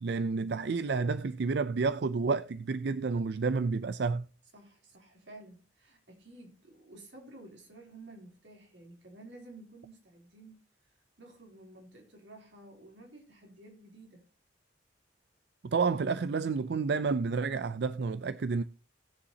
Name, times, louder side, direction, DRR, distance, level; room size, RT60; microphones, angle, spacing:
voice 1, 0.0-4.3 15.6-18.6, right 4 dB, 65° right, 0.4 m, -30 dB
voice 2, 4.5-10.6 11.2-14.2, right 2 dB, 90° right, 3.4 m, -52 dB
18.5 x 7.0 x 2.8 m
head